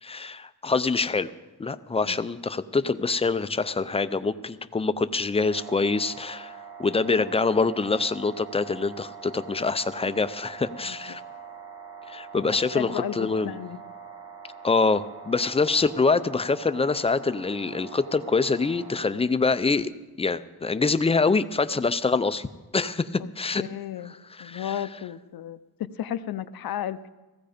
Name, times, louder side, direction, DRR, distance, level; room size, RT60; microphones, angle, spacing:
voice 1, 0.0-1.3 1.6-6.5 6.8-11.2 12.1-13.5 14.6-19.9 20.2-22.5 22.7-23.6 24.4-24.7, left 4 dB, 15° left, 12 dB, 0.4 m, -25 dB
sound 1, 5.4-19.1, right 6 dB, 60° right, 3.7 m, -44 dB
voice 2, 10.8-11.2 12.5-13.8 23.6-24.1 24.4-27.1, left 10 dB, 75° left, 13 dB, 0.7 m, -34 dB
16.0 x 15.5 x 5.0 m, 1.2 s
wide cardioid pair, 155°, 36 cm